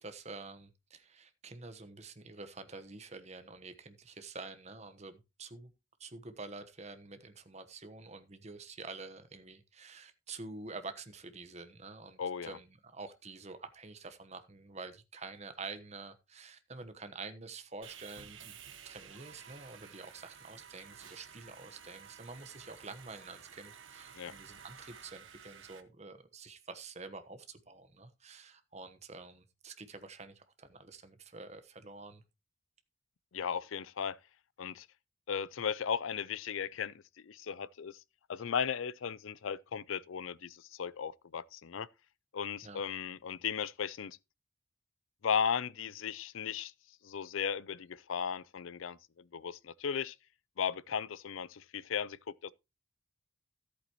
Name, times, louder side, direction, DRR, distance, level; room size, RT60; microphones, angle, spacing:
voice 1, 0.0-5.7 6.0-18.6 18.8-32.2 42.6-42.8, right 3 dB, 35° right, 1.1 m, -48 dB
voice 2, 12.2-12.6 24.2-24.4 33.3-34.2 34.6-34.9 35.3-38.0 38.3-41.9 42.3-44.2 45.2-46.7 47.0-50.2 50.6-52.5, left 7 dB, 80° left, 0.5 m, -36 dB
Sawing, 17.8-25.8, right 7 dB, 75° right, 1.3 m, -53 dB
14.0 x 8.2 x 3.0 m
head